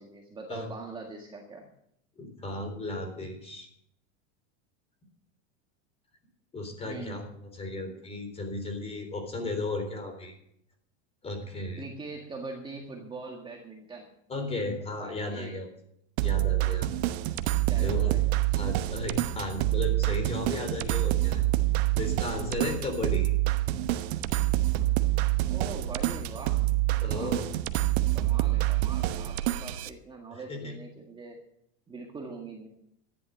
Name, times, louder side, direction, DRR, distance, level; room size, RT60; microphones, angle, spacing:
voice 1, 0.0-1.7 6.8-7.2 11.8-14.1 15.0-15.6 17.7-18.3 25.5-26.6 27.1-27.4 28.1-31.4 31.9-32.7, right 3 dB, 15° right, 1 dB, 1.7 m, -42 dB
voice 2, 2.2-3.7 6.5-10.4 11.2-11.8 14.3-15.7 16.2-16.9 17.8-18.2 18.5-21.4 22.0-23.3 27.0-27.5 30.3-30.7, left 2 dB, 20° left, 5 dB, 3.8 m, -35 dB
sound 1, 16.2-29.9, right 16 dB, 65° right, 1.0 m, -27 dB
13.5 x 10.5 x 6.5 m, 0.72 s
supercardioid pair, 145°, 34 cm